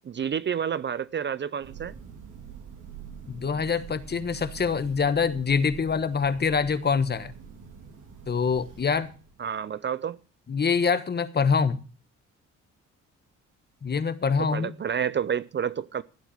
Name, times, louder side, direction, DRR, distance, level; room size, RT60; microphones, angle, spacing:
voice 1, 0.0-1.9 9.4-10.2 14.4-16.0, right 8 dB, 35° right, 0.5 m, -29 dB
Thunder, 1.6-9.5, right 7 dB, 85° right, 3.3 m, -45 dB
voice 2, 3.3-7.3 8.3-9.1 10.5-11.8 13.8-14.7, left 5 dB, 35° left, 1.2 m, -25 dB
15.0 x 8.3 x 6.4 m
cardioid pair, 90°, 30 cm